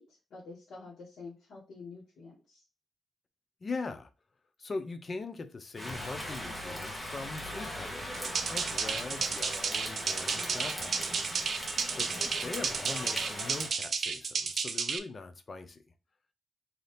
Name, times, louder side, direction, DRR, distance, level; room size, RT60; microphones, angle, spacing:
voice 1, 0.0-2.6 11.9-12.3, left 4 dB, 85° left, 1.7 m, -48 dB
voice 2, 3.6-4.1 4.6-11.2 12.0-15.8, left 3 dB, 30° left, 0.5 m, -41 dB
Rain, 5.8-13.7, equal, 5° left, 1.0 m, -39 dB
sound 1, 8.1-15.0, right 5 dB, 45° right, 0.5 m, -32 dB
4.0 x 2.8 x 3.3 m
wide cardioid pair, 175°, 0 cm